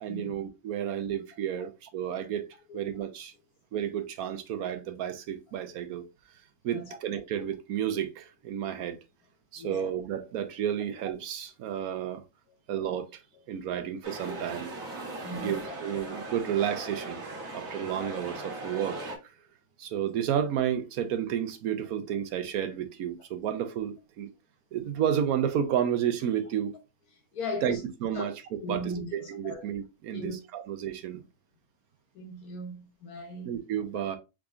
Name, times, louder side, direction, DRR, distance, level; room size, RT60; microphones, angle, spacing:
voice 1, 0.0-2.5 2.7-3.3 3.7-6.0 6.6-9.0 9.5-12.2 12.7-13.2 13.5-14.7 15.4-17.2 17.5-19.3 19.8-24.3 24.7-26.7 27.6-31.2 33.4-34.2, right 9 dB, 80° right, 1.1 m, -31 dB
voice 2, 9.6-9.9 15.2-15.8 27.3-27.8 28.1-28.3 28.6-29.7 30.1-30.4 32.1-33.5, left 1 dB, 80° left, 1.4 m, -38 dB
sound 1, 14.0-19.2, right 2 dB, 65° right, 1.6 m, -39 dB
4.8 x 3.7 x 2.4 m
omnidirectional pair, 1.6 m